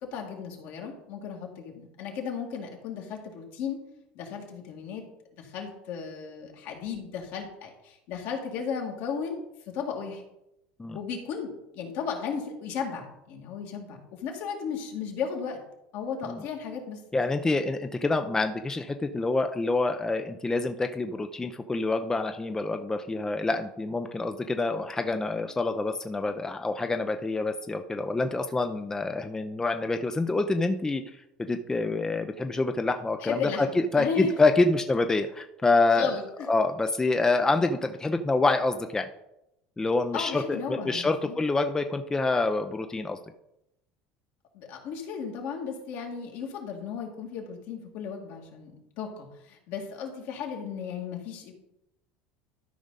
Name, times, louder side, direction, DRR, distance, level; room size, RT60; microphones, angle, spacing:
voice 1, 0.0-3.8 4.1-5.0 5.4-10.2 10.9-15.6 15.9-17.4 33.2-34.3 35.9-36.5 40.1-41.4 44.5-51.5, left 6 dB, 65° left, 1 dB, 2.1 m, -35 dB
voice 2, 17.1-31.0 31.5-36.2 36.5-39.1 39.8-43.2, left 3 dB, 15° left, 7 dB, 0.5 m, -26 dB
12.5 x 5.1 x 4.0 m, 0.86 s
supercardioid pair, 105°, 4 cm